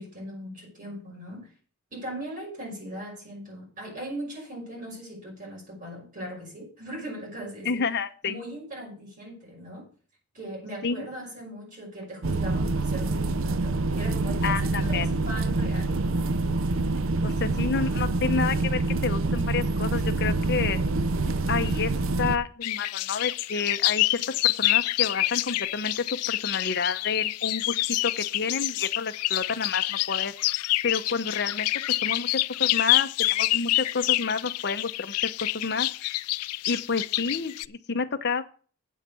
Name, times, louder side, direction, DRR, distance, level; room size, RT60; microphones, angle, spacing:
voice 1, 0.0-1.5 1.9-7.8 8.2-9.9 10.3-15.9 16.2-16.4, right 1 dB, 35° right, -1 dB, 5.6 m, -39 dB
voice 2, 7.6-8.4 10.8-11.1 14.4-15.1 17.2-20.8 21.5-21.9 22.2-27.8 28.0-31.7 32.0-36.2 36.7-38.4, left 5 dB, 50° left, 9 dB, 0.8 m, -30 dB
sound 1, 12.2-22.4, right 2 dB, 60° right, 0.6 m, -26 dB
sound 2, 22.6-37.6, left 18 dB, 90° left, 0.4 m, -27 dB
8.3 x 7.3 x 6.9 m, 0.41 s
head